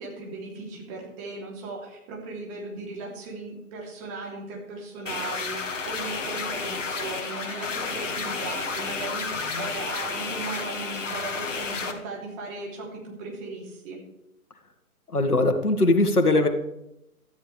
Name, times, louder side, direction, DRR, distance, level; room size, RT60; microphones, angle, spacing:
voice 1, 0.0-14.0, right 3 dB, 20° right, -2 dB, 3.2 m, -37 dB
sound 1, 5.1-11.9, left 4 dB, 55° left, 2.0 m, -31 dB
voice 2, 15.1-16.5, left 2 dB, 80° left, 6 dB, 2.0 m, -21 dB
17.0 x 13.0 x 3.4 m, 0.86 s
figure-of-eight pair, 140°, 45 cm